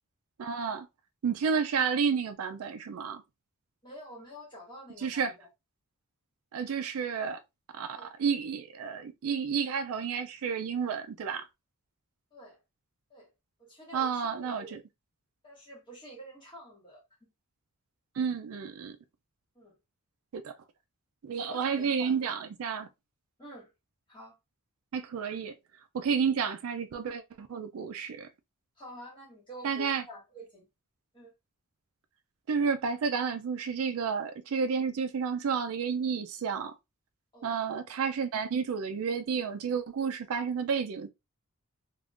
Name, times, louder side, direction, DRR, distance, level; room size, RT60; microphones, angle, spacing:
voice 1, 0.4-0.9 1.2-3.2 5.0-5.3 6.5-7.4 7.7-11.5 13.9-14.8 18.2-19.0 20.3-20.6 21.2-22.9 24.9-25.6 25.9-28.3 29.6-30.0 32.5-36.7 37.4-41.1, right 6 dB, 70° right, 0.4 m, -31 dB
voice 2, 3.8-5.5 7.9-8.1 12.3-12.6 13.1-13.3 13.6-14.8 15.4-17.0 19.6-19.8 21.4-22.3 23.4-23.7 24.1-24.4 28.8-30.7 31.1-31.3 37.3-37.5, equal, 20° left, 1.8 m, -48 dB
3.5 x 2.4 x 2.4 m
head